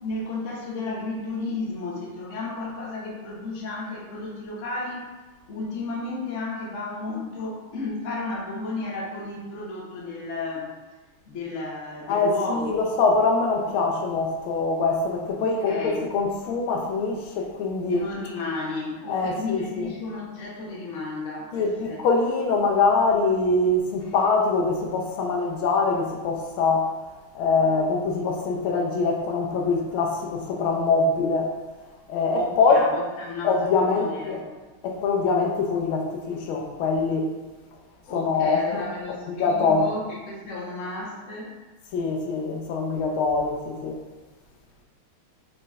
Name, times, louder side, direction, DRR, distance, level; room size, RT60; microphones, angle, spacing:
voice 1, 0.0-5.1 5.5-10.7 11.3-12.7 15.4-16.0 17.9-22.0 32.3-34.5 38.1-41.6, left 3 dB, 50° left, -3 dB, 1.0 m, -33 dB
voice 2, 12.1-18.0 19.1-19.9 21.5-27.0 27.3-31.6 32.1-32.9 33.4-34.4 34.8-37.3 38.1-38.8 39.3-39.9 41.9-44.0, left 4 dB, 80° left, 1 dB, 1.4 m, -23 dB
5.2 x 4.0 x 2.3 m, 1.3 s
omnidirectional pair, 2.3 m